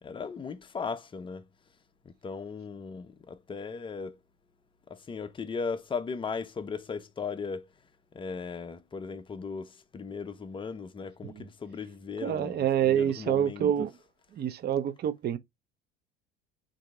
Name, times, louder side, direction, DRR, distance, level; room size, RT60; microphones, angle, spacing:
voice 1, 0.0-1.4 2.0-4.2 4.9-7.7 8.1-13.7, left 5 dB, 15° left, 0.6 m, -37 dB
voice 2, 12.2-13.9 14.3-15.4, right 10 dB, 35° right, 0.7 m, -27 dB
3.6 x 2.7 x 4.5 m
figure-of-eight pair, 65°, 29 cm